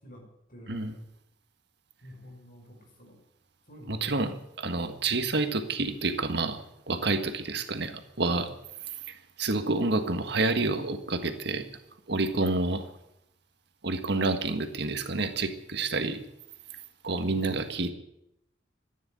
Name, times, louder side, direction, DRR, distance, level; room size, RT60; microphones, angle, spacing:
voice 1, 0.0-1.0 2.0-3.2 3.7-4.2 17.3-17.6, equal, 50° left, 1 dB, 5.8 m, -48 dB
voice 2, 3.9-6.6 6.9-8.5 9.1-11.6 12.1-12.9 13.8-16.2 17.0-17.9, right 3 dB, 65° right, 8 dB, 1.6 m, -29 dB
14.0 x 10.5 x 9.5 m, 0.79 s
head